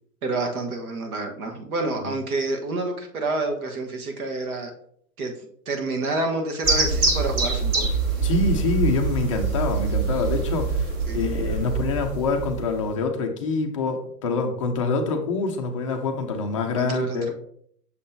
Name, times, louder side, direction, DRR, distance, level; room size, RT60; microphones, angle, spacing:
voice 1, 0.2-4.7 5.2-5.3 5.6-8.0 11.1-11.4 16.7-17.3, right 2 dB, 60° right, 4 dB, 1.5 m, -28 dB
sound 1, 6.6-12.9, right 4 dB, 20° right, 0.9 m, -25 dB
voice 2, 8.2-17.3, left 3 dB, 20° left, 3 dB, 0.5 m, -26 dB
6.6 x 5.3 x 2.8 m, 0.65 s
hypercardioid pair, 140°, 48 cm